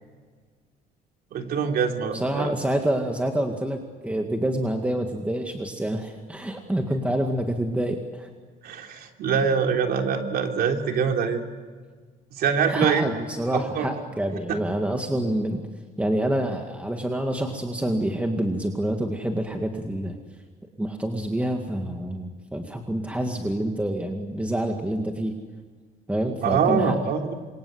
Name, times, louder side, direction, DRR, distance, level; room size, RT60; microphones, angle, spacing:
voice 1, 1.3-2.5 8.6-11.4 12.3-13.1 13.5-13.9 14.5-14.6 26.4-27.3, right 6 dB, 65° right, 4 dB, 3.3 m, -24 dB
voice 2, 2.1-8.3 12.7-15.6 16.0-20.2 20.8-25.3 26.1-27.0, right 1 dB, 10° right, 3 dB, 2.2 m, -27 dB
28.0 x 24.0 x 8.0 m, 1.5 s
cardioid pair, 110°, 17 cm